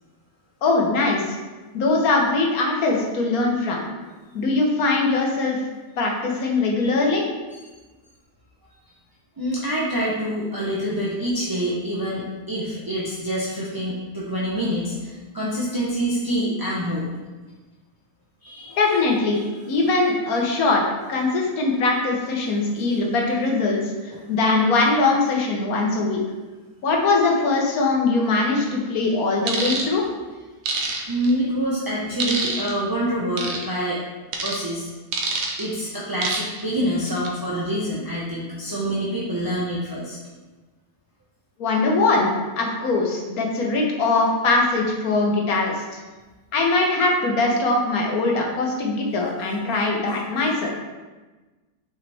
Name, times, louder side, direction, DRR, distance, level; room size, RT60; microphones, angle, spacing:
voice 1, 0.6-1.4 1.7-3.9 4.3-5.6 6.0-7.2 18.8-20.8 21.1-26.2 26.8-30.0 41.6-46.0 46.5-50.7, left 3 dB, 65° left, 0 dB, 1.4 m, -21 dB
voice 2, 9.4-17.1 18.4-19.0 19.3-19.4 24.1-24.3 31.1-34.0 34.4-34.9 35.6-40.2, equal, 20° right, -7 dB, 0.6 m, -26 dB
sound 1, 29.5-29.9 30.7-31.3 32.2-32.7 33.4-33.6 34.3-34.6 35.1-35.6 36.2-36.6 37.1-37.3, right 4 dB, 80° right, 1.4 m, -26 dB
6.3 x 4.6 x 3.4 m, 1.2 s
omnidirectional pair, 1.7 m